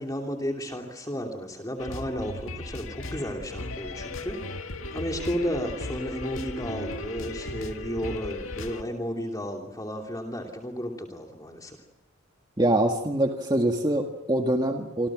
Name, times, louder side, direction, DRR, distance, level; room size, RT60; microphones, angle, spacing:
voice 1, 0.0-4.4 4.9-11.8, equal, 20° left, 2 dB, 2.9 m, -33 dB
sound 1, 1.8-8.8, left 2 dB, 85° left, 2.0 m, -36 dB
voice 2, 12.6-15.1, right 1 dB, 20° right, 3 dB, 1.8 m, -24 dB
27.5 x 26.5 x 6.3 m, 0.89 s
head